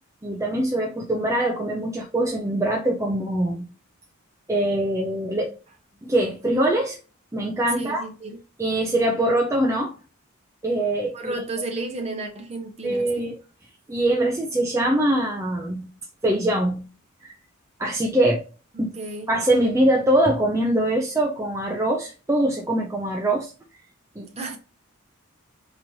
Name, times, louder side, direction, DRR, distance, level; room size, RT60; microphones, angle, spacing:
voice 1, 0.2-3.7 4.5-5.6 6.0-7.0 7.3-8.0 8.6-9.9 10.6-11.3 12.8-13.3 13.9-15.9 16.2-16.8 17.8-18.4 18.8-18.9 19.3-23.5 24.2-24.3, right 1 dB, 15° right, 0.5 m, -23 dB
voice 2, 7.7-8.4 11.1-13.3 18.7-19.3 24.2-24.6, right 2 dB, 30° right, 0.9 m, -33 dB
4.1 x 3.0 x 2.7 m
head